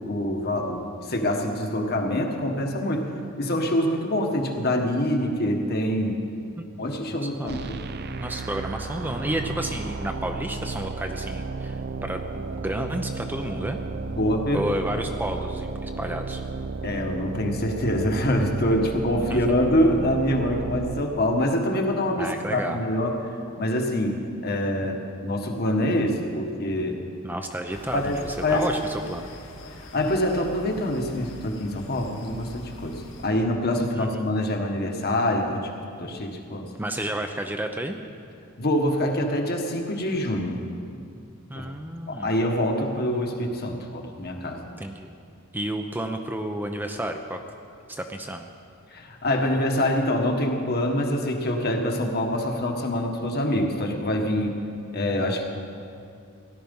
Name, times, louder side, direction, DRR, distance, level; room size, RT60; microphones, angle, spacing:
voice 1, 0.0-3.1 3.4-6.2 6.8-7.8 14.1-14.7 16.8-23.2 23.6-27.0 27.9-28.2 28.4-28.6 29.9-35.7 36.0-36.7 38.6-40.6 41.5-41.6 42.1-44.6 48.9-54.6 54.9-55.4, left 1 dB, 50° left, 2 dB, 1.6 m, -25 dB
voice 2, 6.6-7.7 8.2-11.8 12.0-13.8 14.5-16.4 19.3-19.4 22.2-22.8 27.2-29.3 33.9-34.1 36.8-38.0 41.5-42.3 44.8-45.2 45.5-47.4 47.9-48.5, right 1 dB, 10° right, 5 dB, 0.6 m, -31 dB
sound 1, 7.5-21.0, right 3 dB, 50° right, 0.6 m, -33 dB
sound 2, 27.7-33.3, left 3 dB, 75° left, 2.1 m, -40 dB
17.0 x 12.0 x 5.5 m, 2.4 s
head